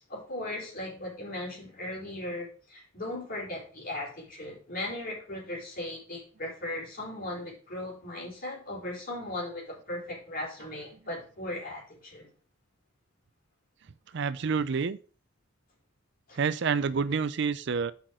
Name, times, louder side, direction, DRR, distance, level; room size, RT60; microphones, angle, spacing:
voice 1, 0.0-12.3 16.3-16.4, left 1 dB, 45° left, 4.4 m, -37 dB
voice 2, 14.1-15.0 16.4-17.9, right 5 dB, 60° right, 0.5 m, -28 dB
6.5 x 5.8 x 6.2 m
head